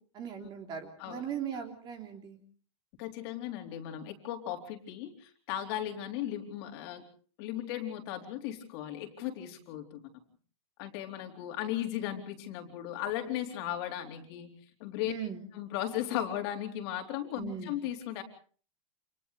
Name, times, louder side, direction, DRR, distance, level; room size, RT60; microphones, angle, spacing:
voice 1, 0.1-2.4 15.0-15.4 17.4-17.8, right 8 dB, 25° right, 4 dB, 3.4 m, -39 dB
voice 2, 3.0-7.0 7.4-10.0 10.8-14.5 14.8-15.1 15.5-18.2, left 12 dB, 45° left, 4 dB, 3.8 m, -36 dB
30.0 x 28.0 x 3.3 m, 0.43 s
supercardioid pair, 160°, 18 cm